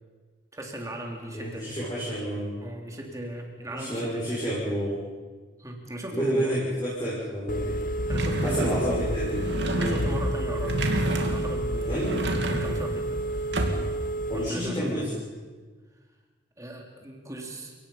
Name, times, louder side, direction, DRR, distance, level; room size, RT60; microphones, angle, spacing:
voice 1, 0.5-1.7 2.2-2.3 2.6-4.6 5.6-6.6 8.1-8.9 9.8-10.9 11.2-12.0 12.5-13.2 14.3-15.1 16.6-17.7, right 1 dB, 15° right, 1 dB, 3.2 m, -37 dB
voice 2, 1.3-2.5 3.7-5.0 6.1-7.8 8.4-9.5 9.8-10.0 11.9-12.3 14.3-15.1, equal, 20° left, -7 dB, 6.2 m, -29 dB
Telephone, 7.5-14.5, right 1 dB, 45° left, 0.7 m, -30 dB
sound 1, 8.1-14.1, right 1 dB, 60° right, 2.6 m, -30 dB
30.0 x 18.0 x 5.8 m, 1.4 s
head